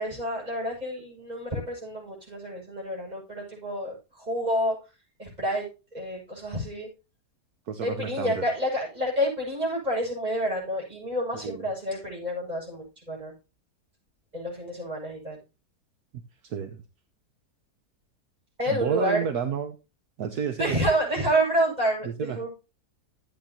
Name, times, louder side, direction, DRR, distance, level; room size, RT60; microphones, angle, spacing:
voice 1, 0.0-4.7 5.2-6.9 7.8-13.3 14.3-15.4 18.6-19.2 20.6-22.5, equal, 25° right, -2 dB, 7.3 m, -29 dB
voice 2, 7.7-8.4 11.3-11.7 16.4-16.8 18.7-19.8 20.2-20.8 22.0-22.4, right 7 dB, 70° right, 7 dB, 1.5 m, -31 dB
13.5 x 8.7 x 2.9 m, 0.30 s
omnidirectional pair, 1.7 m